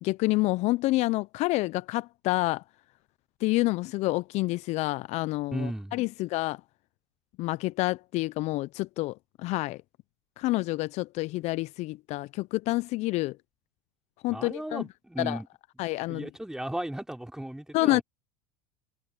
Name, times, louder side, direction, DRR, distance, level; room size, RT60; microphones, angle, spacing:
voice 1, 0.0-2.6 3.4-6.6 7.4-9.8 10.4-13.4 14.2-14.8 15.2-15.4 15.8-16.3 17.7-18.0, left 20 dB, 55° left, 0.8 m, -28 dB
voice 2, 5.5-6.0 14.3-15.5 16.0-18.0, right 1 dB, 5° right, 4.7 m, -35 dB
hypercardioid pair, 80°, 14 cm